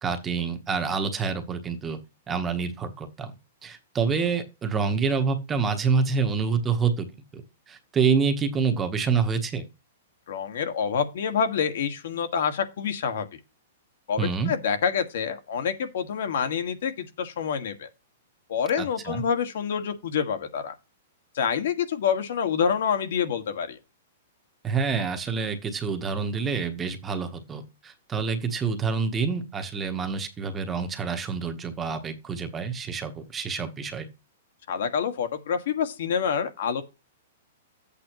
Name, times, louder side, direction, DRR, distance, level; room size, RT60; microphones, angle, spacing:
voice 1, 0.0-2.0 2.3-3.3 3.6-7.1 7.3-7.4 7.7-9.6 14.2-14.5 18.8-19.2 24.6-34.1, right 5 dB, 15° right, 1.1 m, -27 dB
voice 2, 10.3-13.3 14.1-17.9 18.5-20.7 21.3-23.8 34.7-36.8, left 7 dB, 65° left, 1.8 m, -27 dB
13.0 x 8.3 x 3.0 m
hypercardioid pair, 165°, 0 cm